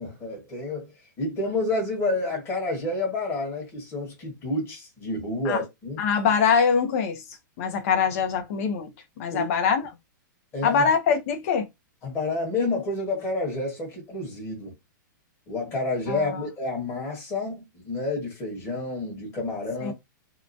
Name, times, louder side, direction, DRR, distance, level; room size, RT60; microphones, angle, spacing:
voice 1, 0.0-6.1 9.3-9.5 10.5-10.8 12.0-14.7 15.5-19.9, left 2 dB, 20° left, 1.3 m, -29 dB
voice 2, 6.0-7.2 7.6-8.9 9.2-9.9 10.6-11.7 16.1-16.2 19.8-19.9, left 6 dB, 45° left, 0.7 m, -23 dB
2.8 x 2.2 x 2.6 m
hypercardioid pair, 150°, 11 cm